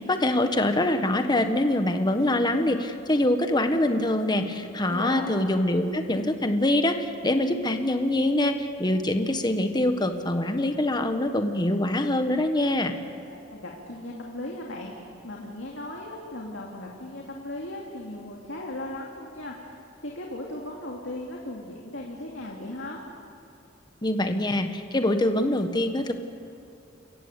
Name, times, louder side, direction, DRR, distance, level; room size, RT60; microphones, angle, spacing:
voice 1, 0.1-12.9 24.0-26.1, left 1 dB, 20° left, 7 dB, 1.4 m, -24 dB
voice 2, 4.9-5.3 13.3-19.7 20.0-23.0, left 1 dB, 70° left, -2 dB, 2.5 m, -37 dB
29.0 x 15.0 x 8.4 m, 2.5 s
head